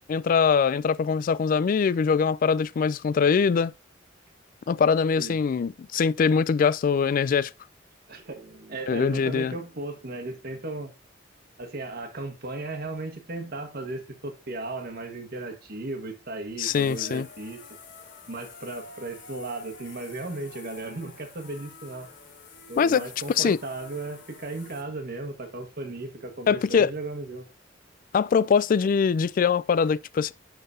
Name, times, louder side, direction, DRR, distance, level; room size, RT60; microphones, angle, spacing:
voice 1, 0.1-3.7 4.7-7.5 8.9-9.5 16.6-17.3 22.8-23.1 23.4-23.6 26.5-26.9 28.1-30.3, left 6 dB, 45° left, 0.3 m, -22 dB
voice 2, 8.1-10.9 11.6-17.6 18.3-22.1 22.7-27.4, right 2 dB, 55° right, 1.4 m, -36 dB
sound 1, 16.6-24.8, left 4 dB, 65° left, 1.5 m, -47 dB
10.5 x 3.9 x 2.6 m
head